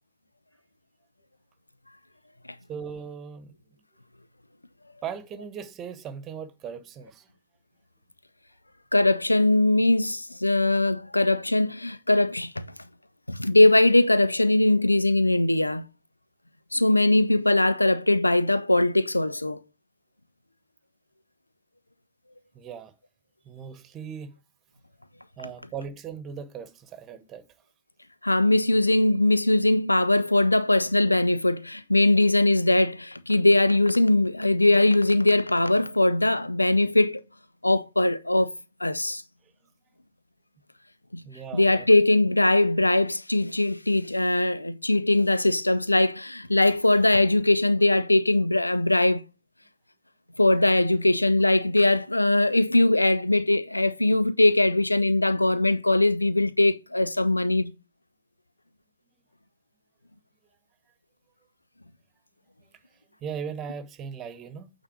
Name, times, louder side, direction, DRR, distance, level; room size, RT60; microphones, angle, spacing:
voice 1, 2.7-3.5 5.0-7.3 22.5-22.9 23.4-24.3 25.4-27.4 41.2-41.9 63.2-64.7, right 7 dB, 30° right, 1.3 m, -38 dB
voice 2, 8.9-12.6 13.3-15.8 16.7-19.6 28.2-37.2 37.6-38.5 38.8-39.2 41.1-41.2 41.5-49.2 50.4-57.7, left 2 dB, 85° left, 0.4 m, -21 dB
8.8 x 4.0 x 6.0 m
figure-of-eight pair, 90°, 0 cm